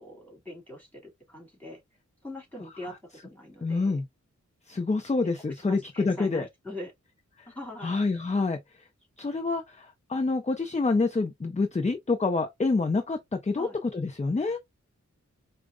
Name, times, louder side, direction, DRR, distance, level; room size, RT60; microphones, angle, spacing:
voice 1, 0.0-1.8 2.2-4.0 5.2-6.9 7.5-8.0 13.6-13.8, left 1 dB, 5° left, 2.3 m, -42 dB
voice 2, 3.6-4.0 4.7-6.5 7.4-7.5 7.8-8.6 9.2-14.6, left 3 dB, 25° left, 0.5 m, -27 dB
4.9 x 2.1 x 2.4 m
wide cardioid pair, 70°, 30 cm